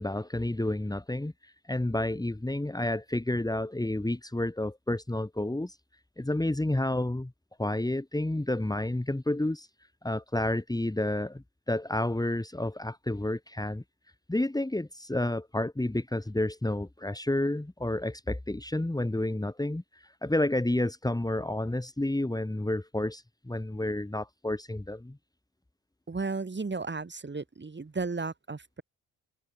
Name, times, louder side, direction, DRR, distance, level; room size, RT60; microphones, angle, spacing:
voice 1, 0.0-5.8 6.2-7.3 7.6-9.7 10.0-13.8 14.3-25.2, left 1 dB, 10° left, 3.6 m, -30 dB
voice 2, 26.1-28.8, right 4 dB, 30° right, 6.8 m, -34 dB
hypercardioid pair, 45°, 38 cm